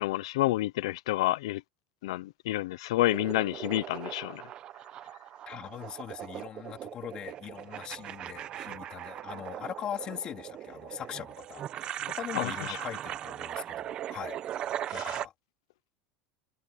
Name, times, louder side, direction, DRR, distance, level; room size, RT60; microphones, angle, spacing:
voice 1, 0.0-1.6 2.0-4.4 12.4-12.5 14.9-15.2, left 16 dB, 85° left, 0.6 m, -29 dB
sound 1, 3.0-15.3, right 11 dB, 35° right, 1.0 m, -39 dB
voice 2, 5.5-14.4 14.9-15.3, left 10 dB, 30° left, 3.1 m, -41 dB
supercardioid pair, 145°, 3 cm